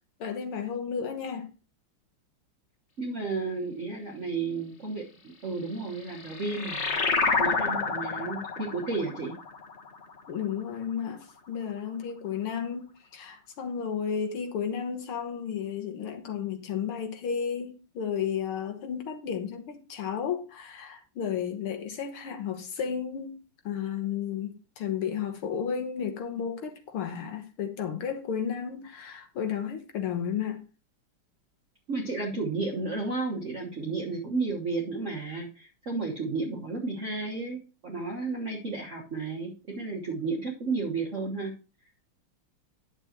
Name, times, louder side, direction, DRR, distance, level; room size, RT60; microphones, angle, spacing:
voice 1, 0.2-1.5 10.3-23.4 23.7-30.6, left 7 dB, 75° left, 1.9 m, -33 dB
voice 2, 3.0-7.0 7.4-9.3 31.9-41.5, right 3 dB, 40° right, 1.5 m, -32 dB
sound 1, 5.8-10.8, left 4 dB, 35° left, 1.4 m, -29 dB
9.9 x 7.0 x 2.9 m
omnidirectional pair, 2.4 m